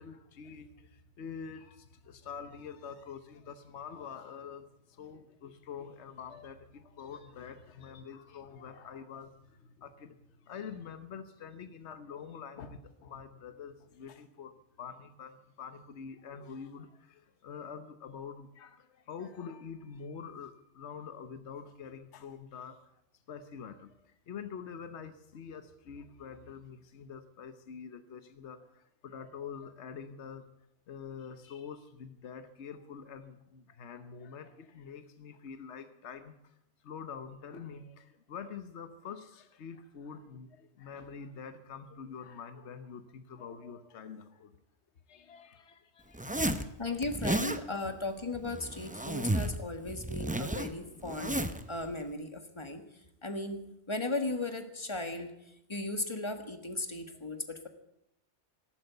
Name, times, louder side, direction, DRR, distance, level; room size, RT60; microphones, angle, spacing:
voice 1, 0.0-22.8 23.3-30.4 30.9-36.5 36.8-44.6 45.1-46.7, left 6 dB, 70° left, 10 dB, 1.2 m, -46 dB
Zipper (clothing), 46.1-46.7 47.0-47.6 48.4-49.6 49.9-51.6, right 1 dB, 10° right, 0.5 m, -33 dB
voice 2, 46.8-57.7, left 2 dB, 25° left, 7 dB, 1.5 m, -37 dB
13.5 x 12.0 x 8.0 m, 0.81 s
omnidirectional pair, 1.2 m